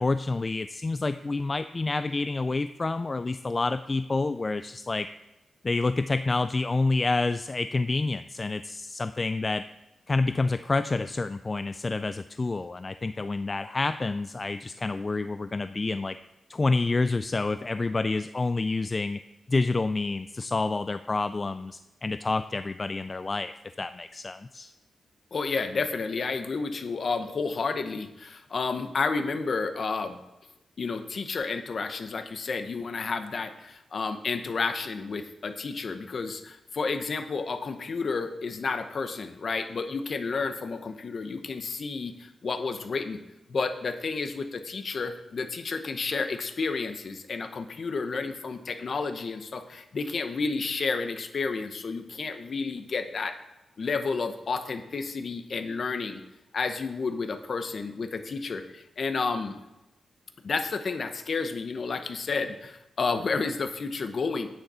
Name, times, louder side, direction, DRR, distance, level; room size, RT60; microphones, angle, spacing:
voice 1, 0.0-5.1 5.6-9.6 10.1-16.2 16.5-19.2 19.5-23.5 23.8-24.7, left 3 dB, 30° left, 11 dB, 0.3 m, -28 dB
voice 2, 25.3-30.2 30.8-43.2 43.5-53.4 53.8-56.2 56.5-59.6 60.4-64.5, left 4 dB, 55° left, 8 dB, 1.0 m, -31 dB
10.5 x 9.0 x 4.3 m, 0.97 s
cardioid pair, 95°, 0 cm